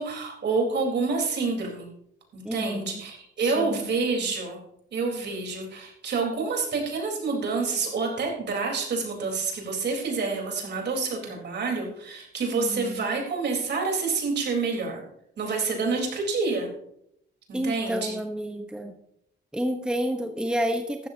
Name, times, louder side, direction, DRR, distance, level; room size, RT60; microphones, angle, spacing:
voice 1, 0.0-1.9 2.3-4.6 4.9-15.0 15.4-16.7 17.5-18.2, right 4 dB, 60° right, 1 dB, 4.0 m, -28 dB
voice 2, 2.4-3.0 3.4-3.8 12.5-13.0 17.5-18.9 19.5-21.1, equal, 5° right, 5 dB, 1.1 m, -30 dB
14.5 x 12.5 x 2.8 m, 0.75 s
cardioid pair, 90°, 20 cm